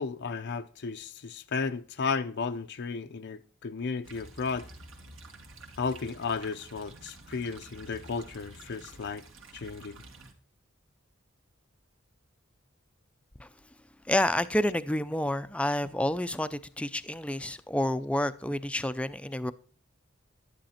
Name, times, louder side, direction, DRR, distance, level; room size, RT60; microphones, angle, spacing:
voice 1, 0.0-4.7 5.8-9.2 9.5-10.0, left 5 dB, 55° left, 0.6 m, -34 dB
sound 1, 4.0-10.3, right 2 dB, 70° right, 2.3 m, -50 dB
voice 2, 14.1-19.5, left 1 dB, 5° left, 0.5 m, -29 dB
11.0 x 10.5 x 4.3 m
head